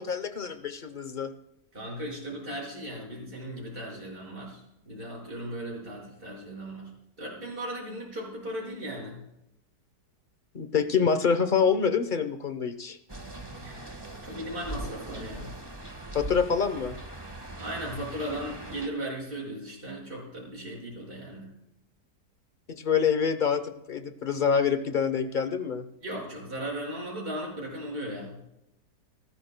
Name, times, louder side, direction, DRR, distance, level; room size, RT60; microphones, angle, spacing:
voice 1, 0.0-1.3 10.5-13.0 16.1-17.0 22.7-25.8, left 6 dB, 40° left, 10 dB, 0.8 m, -26 dB
voice 2, 1.7-6.9 7.2-9.2 13.5-15.5 17.6-21.5 26.0-28.4, right 1 dB, 30° right, -4 dB, 6.4 m, -37 dB
sound 1, 13.1-18.9, right 2 dB, 15° right, 1.4 m, -40 dB
25.5 x 13.5 x 2.2 m, 0.83 s
omnidirectional pair, 1.9 m